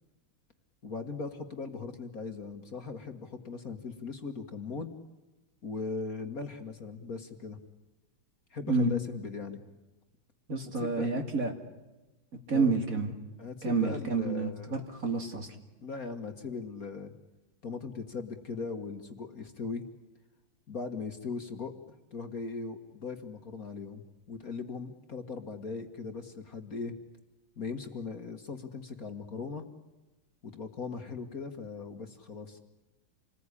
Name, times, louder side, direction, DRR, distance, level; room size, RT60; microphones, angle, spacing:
voice 1, 0.8-4.9 5.6-7.6 8.5-9.6 10.6-11.1 12.5-12.7 13.4-14.8 15.8-17.1 17.6-19.8 20.7-26.9 27.6-29.7 30.4-32.6, left 4 dB, 45° left, 7 dB, 2.0 m, -39 dB
voice 2, 10.5-11.5 12.5-13.1 13.6-15.5, right 3 dB, 40° right, 5 dB, 2.9 m, -29 dB
28.5 x 20.0 x 9.9 m, 1.1 s
omnidirectional pair, 2.3 m